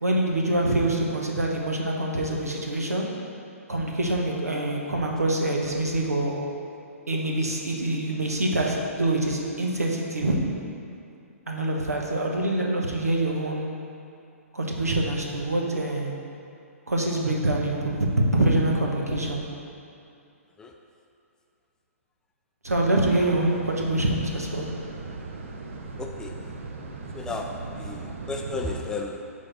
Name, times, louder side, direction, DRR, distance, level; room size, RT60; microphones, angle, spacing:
voice 1, 0.0-3.1 3.7-6.4 7.1-10.4 11.5-13.7 14.5-16.1 16.9-18.1 18.3-19.4 22.6-24.7, right 1 dB, 85° right, -1 dB, 1.1 m, -25 dB
sound 1, 22.7-28.8, right 3 dB, 55° right, 0.8 m, -38 dB
voice 2, 26.0-26.5 27.1-29.3, left 3 dB, 10° left, 1 dB, 0.4 m, -34 dB
6.3 x 4.1 x 6.1 m, 2.6 s
figure-of-eight pair, 125°, 8 cm